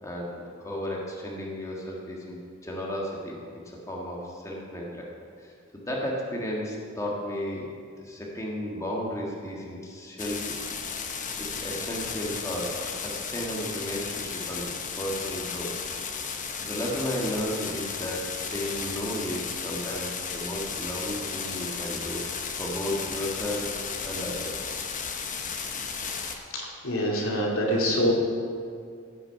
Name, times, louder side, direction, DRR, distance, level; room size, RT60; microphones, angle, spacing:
voice 1, 0.0-3.4 3.6-5.1 5.4-7.7 8.0-10.7 11.4-15.7 16.6-22.3 22.6-24.7, equal, 15° left, -3 dB, 1.5 m, -34 dB
sound 1, 10.2-26.4, left 6 dB, 40° left, 1.0 m, -34 dB
voice 2, 26.5-28.1, equal, 80° left, -2 dB, 2.5 m, -25 dB
17.0 x 5.9 x 5.7 m, 2.3 s
head